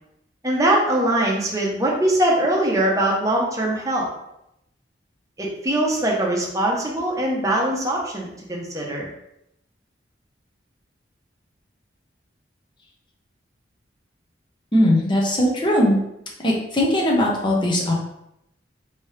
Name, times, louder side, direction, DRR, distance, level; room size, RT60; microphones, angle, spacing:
voice 1, 0.4-4.1 5.4-9.1, right 1 dB, 15° right, -3 dB, 0.7 m, -22 dB
voice 2, 14.7-16.0 16.4-17.9, left 1 dB, 25° left, -3 dB, 0.7 m, -19 dB
3.4 x 2.7 x 3.2 m, 0.81 s
head